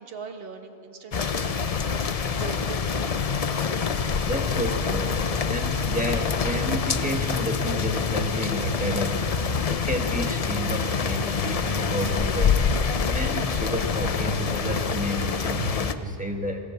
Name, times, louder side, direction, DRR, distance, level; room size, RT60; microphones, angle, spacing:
voice 1, 0.0-1.5 2.2-3.8, right 5 dB, 55° right, 4 dB, 1.5 m, -41 dB
sound 1, 1.1-15.9, left 5 dB, 40° left, 0.6 m, -26 dB
voice 2, 4.3-5.2 5.5-16.6, equal, 5° right, 2 dB, 1.7 m, -30 dB
25.0 x 15.5 x 7.2 m, 2.9 s
omnidirectional pair, 1.2 m